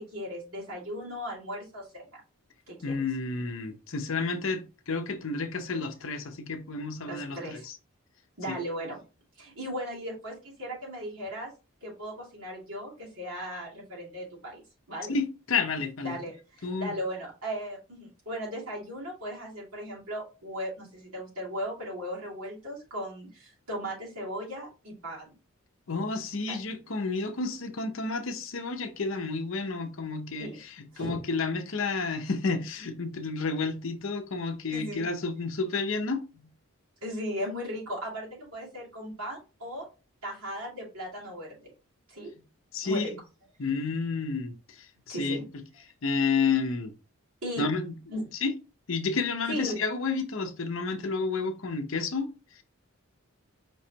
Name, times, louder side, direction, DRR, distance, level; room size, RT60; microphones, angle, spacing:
voice 1, 0.0-2.1 2.7-3.0 7.0-7.7 8.4-9.0 9.4-11.5 11.8-14.6 14.9-15.1 16.0-25.3 26.5-26.6 30.4-30.6 30.9-31.2 34.7-35.0 37.0-39.9 40.2-41.7 42.1-42.3 42.8-43.1 45.1-45.4 47.4-47.6 48.1-48.2 49.5-49.8, equal, 75° right, 2.5 m, -37 dB
voice 2, 2.8-7.7 8.5-8.6 15.1-16.2 16.6-17.0 25.9-36.5 42.7-43.2 43.6-45.4 46.0-46.9 47.6-47.9 48.4-48.5 48.9-52.3, left 4 dB, 60° left, 0.7 m, -31 dB
5.2 x 3.1 x 2.8 m
head